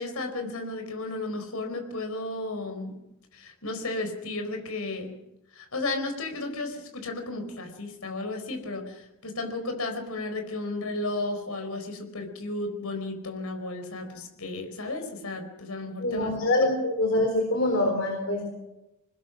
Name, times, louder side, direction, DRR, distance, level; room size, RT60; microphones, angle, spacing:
voice 1, 0.0-2.9 3.3-5.1 5.5-16.3, left 2 dB, 85° left, 5 dB, 4.8 m, -33 dB
voice 2, 16.0-18.5, left 1 dB, 60° left, 2 dB, 4.2 m, -25 dB
27.5 x 20.5 x 6.2 m, 0.92 s
head